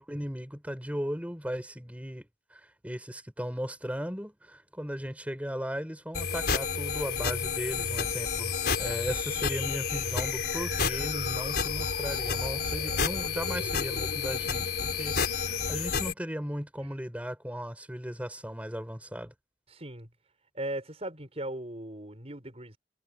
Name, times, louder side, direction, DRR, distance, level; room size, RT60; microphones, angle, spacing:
voice 1, 0.0-19.3, equal, 10° right, 7.4 m, -37 dB
sound 1, 6.1-16.1, left 5 dB, 60° left, 5.2 m, -30 dB
voice 2, 19.7-20.1 20.5-22.8, right 1 dB, 35° right, 6.2 m, -38 dB
head